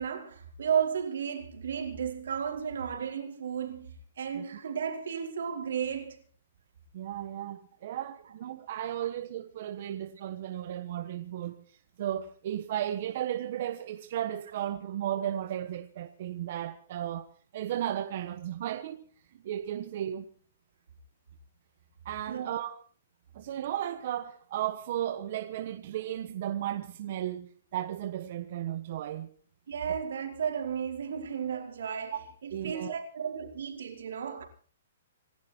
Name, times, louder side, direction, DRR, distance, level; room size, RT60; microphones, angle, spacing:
voice 1, 0.0-6.2 22.3-22.7 29.7-32.2 32.4-34.4, right 7 dB, 75° right, 4.8 m, -33 dB
voice 2, 6.9-17.2 17.5-19.1 19.4-20.3 22.0-22.8 23.3-29.3 32.1-32.2 32.5-32.9, right 11 dB, 45° right, 1.2 m, -35 dB
27.0 x 11.5 x 4.5 m
hypercardioid pair, 170°, 0 cm